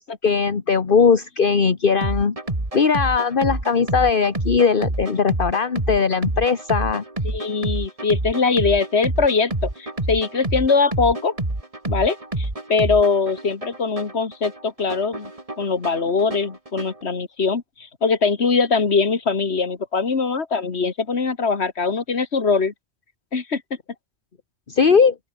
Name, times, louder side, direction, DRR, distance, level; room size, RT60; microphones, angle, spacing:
voice 1, 0.2-2.4 2.7-7.0 24.7-25.1, left 5 dB, 55° left, 1.5 m, -19 dB
sound 1, 2.0-17.0, right 2 dB, 35° right, 3.1 m, -28 dB
voice 2, 7.2-9.5 9.8-11.3 11.9-15.3 15.6-22.7 23.3-23.6, left 4 dB, 90° left, 2.2 m, -22 dB
open air
omnidirectional pair, 1.1 m